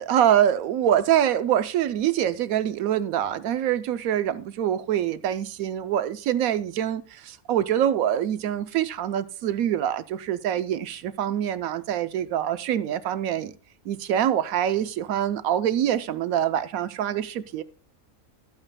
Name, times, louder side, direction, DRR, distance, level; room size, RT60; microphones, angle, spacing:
voice 1, 0.0-13.5 13.9-17.6, right 10 dB, 85° right, 1.1 m, -25 dB
14.0 x 8.7 x 2.2 m
omnidirectional pair, 1.4 m